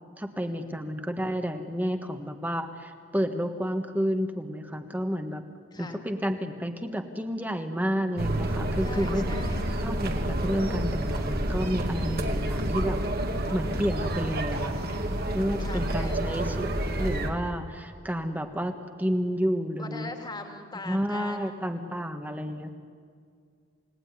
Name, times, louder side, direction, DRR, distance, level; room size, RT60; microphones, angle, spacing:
voice 1, 0.2-5.4 5.8-9.3 9.8-13.0 13.5-14.8 15.3-18.7 19.0-20.1 20.8-22.7, equal, 10° right, 6 dB, 1.4 m, -30 dB
voice 2, 5.7-6.0 8.8-9.7 15.6-16.3 19.8-21.6, left 2 dB, 20° left, 5 dB, 2.4 m, -41 dB
sound 1, 8.2-17.3, right 1 dB, 50° right, 2.3 m, -29 dB
29.5 x 18.0 x 9.8 m, 2.1 s
head